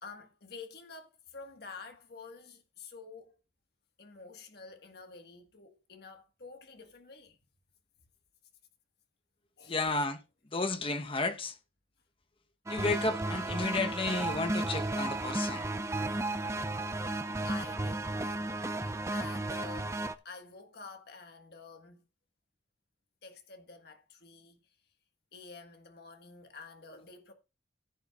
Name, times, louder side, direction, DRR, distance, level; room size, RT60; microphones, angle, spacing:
voice 1, 0.0-3.3 4.0-7.4 9.6-9.9 17.4-22.0 23.2-24.6 25.3-27.3, left 4 dB, 55° left, 1.6 m, -49 dB
voice 2, 9.7-10.2 10.5-11.6 12.7-15.7, left 3 dB, 30° left, 0.9 m, -32 dB
sound 1, 12.7-20.1, right 2 dB, 15° right, 0.5 m, -34 dB
15.5 x 7.7 x 2.4 m
head